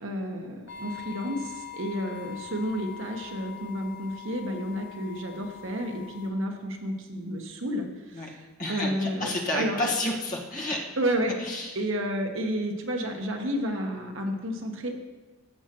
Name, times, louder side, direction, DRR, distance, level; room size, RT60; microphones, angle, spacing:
voice 1, 0.0-9.8 11.0-11.3 11.7-15.0, equal, 65° right, 3 dB, 1.1 m, -31 dB
sound 1, 0.7-6.3, left 10 dB, 60° left, 1.5 m, -43 dB
voice 2, 8.6-10.8 11.4-11.7, left 1 dB, 40° left, -2 dB, 1.5 m, -30 dB
14.0 x 7.3 x 3.0 m, 1.2 s
head